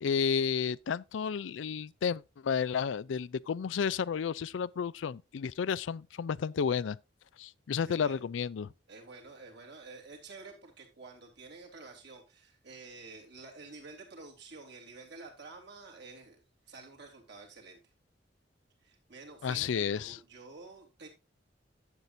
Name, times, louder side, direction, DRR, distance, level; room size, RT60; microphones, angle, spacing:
voice 1, 0.0-7.0 7.4-8.7 19.4-20.2, left 6 dB, 85° left, 0.4 m, -32 dB
voice 2, 7.8-8.2 8.9-16.4 16.7-17.8 18.8-21.1, right 3 dB, 65° right, 3.4 m, -50 dB
11.5 x 8.1 x 2.7 m
head